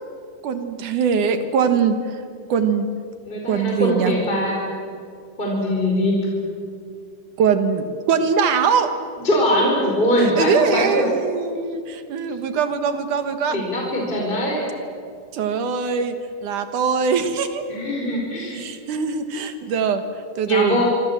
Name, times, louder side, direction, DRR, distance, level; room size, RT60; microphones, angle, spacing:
voice 1, 0.4-2.2 2.5-2.9 3.5-4.1 7.4-8.9 10.4-13.6 15.3-16.2 16.4-17.6 18.5-20.0 20.4-20.8, right 6 dB, 65° right, 8 dB, 2.7 m, -22 dB
voice 2, 3.2-4.6 5.4-6.2 9.2-11.1 13.5-14.7 17.7-18.6 20.5-20.8, left 1 dB, 15° left, -2 dB, 4.8 m, -21 dB
27.5 x 24.5 x 7.4 m, 2.3 s
omnidirectional pair, 4.3 m